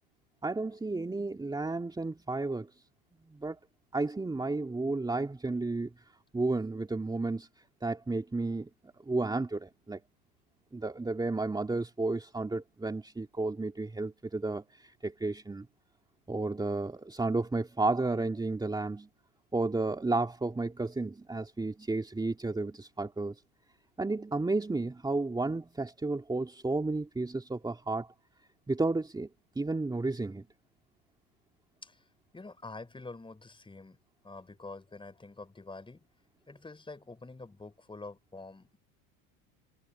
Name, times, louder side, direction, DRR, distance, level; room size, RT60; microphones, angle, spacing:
voice 1, 0.4-2.7 3.3-3.6 3.9-5.9 6.3-7.5 7.8-8.7 9.0-10.0 10.7-15.7 16.3-19.1 19.5-23.4 24.0-28.1 28.7-29.3 29.6-30.4, right 3 dB, 10° right, 2.6 m, -32 dB
voice 2, 32.3-34.0 34.2-36.1 36.5-38.8, left 3 dB, 10° left, 5.3 m, -46 dB
supercardioid pair, 120°, 43 cm